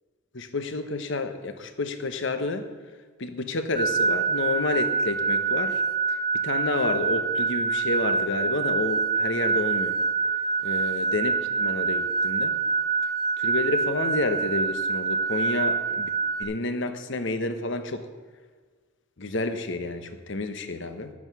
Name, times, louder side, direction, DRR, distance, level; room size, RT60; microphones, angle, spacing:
voice 1, 0.3-2.7 3.2-5.8 6.1-10.0 10.6-12.6 13.4-16.1 16.4-18.1 19.2-21.1, left 2 dB, 55° left, 9 dB, 1.0 m, -30 dB
sound 1, 3.7-16.4, right 5 dB, 15° left, 1.7 m, -26 dB
11.5 x 8.6 x 6.1 m, 1.5 s
head